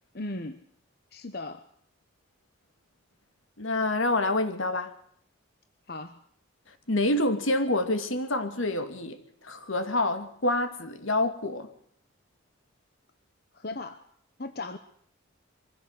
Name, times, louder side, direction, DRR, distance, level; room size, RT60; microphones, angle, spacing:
voice 1, 0.1-0.6 1.1-1.7 5.9-6.2 13.5-14.0 14.4-14.8, left 2 dB, 50° left, 9 dB, 1.1 m, -37 dB
voice 2, 3.6-4.9 6.9-9.2 9.4-11.7, left 2 dB, 75° left, 8 dB, 2.4 m, -27 dB
24.0 x 15.5 x 8.1 m, 0.63 s
head